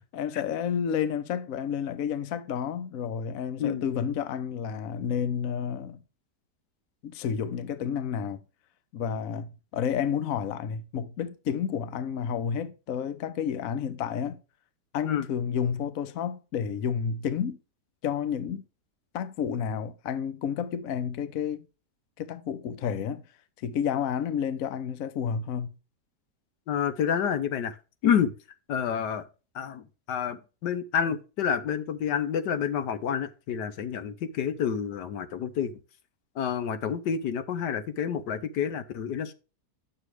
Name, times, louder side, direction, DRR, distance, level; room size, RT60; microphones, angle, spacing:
voice 1, 0.1-6.0 7.0-8.4 8.9-14.4 14.9-17.6 18.0-18.6 19.1-21.7 22.2-23.2 23.6-25.7, left 8 dB, 60° left, 1.1 m, -30 dB
voice 2, 26.7-27.8 28.0-28.3 28.7-29.2 29.5-35.7 36.4-39.3, left 8 dB, 80° left, 1.5 m, -28 dB
9.2 x 6.7 x 3.1 m
omnidirectional pair, 1.8 m